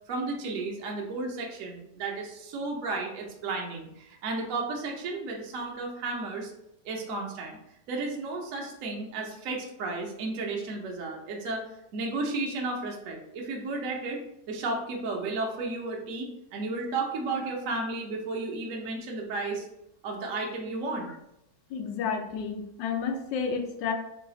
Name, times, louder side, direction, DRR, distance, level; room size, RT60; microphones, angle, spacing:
voice 1, 0.1-6.5 6.8-7.6 7.9-19.7 20.0-21.1, right 3 dB, 65° right, 1 dB, 0.9 m, -33 dB
voice 2, 21.7-23.9, left 6 dB, 90° left, 4 dB, 1.3 m, -31 dB
3.2 x 2.3 x 3.7 m, 0.82 s
omnidirectional pair, 1.9 m